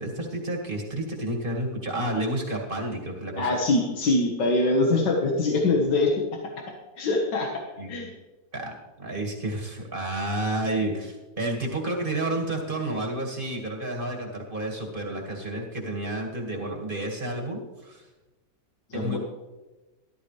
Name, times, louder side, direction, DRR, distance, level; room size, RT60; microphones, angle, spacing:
voice 1, 0.0-3.5 7.8-8.1 8.5-18.1 18.9-19.2, right 1 dB, 30° right, 0 dB, 2.1 m, -30 dB
voice 2, 3.4-6.1 7.0-7.5 7.9-8.1 18.9-19.2, left 2 dB, 85° left, 0 dB, 2.1 m, -23 dB
13.0 x 13.0 x 3.3 m, 1.1 s
omnidirectional pair, 1.8 m